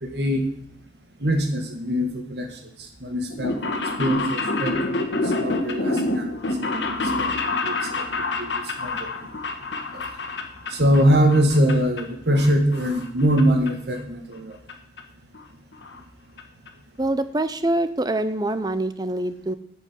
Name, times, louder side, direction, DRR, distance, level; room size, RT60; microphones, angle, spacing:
voice 1, 0.0-0.5 1.2-2.6 3.0-8.0 8.3-9.1 9.9-10.0 10.7-14.6, equal, 70° right, 4 dB, 1.7 m, -23 dB
sound 1, 3.3-11.0 11.3-12.0 12.3-13.4 13.7-13.8 14.7-14.8 15.0-15.1 15.3-15.4 15.7-16.0 16.4-16.5 16.7-16.8, left 2 dB, 90° left, 1.3 m, -27 dB
voice 2, 17.0-19.5, right 1 dB, 20° right, 12 dB, 0.6 m, -25 dB
8.7 x 5.4 x 8.0 m, 0.65 s
head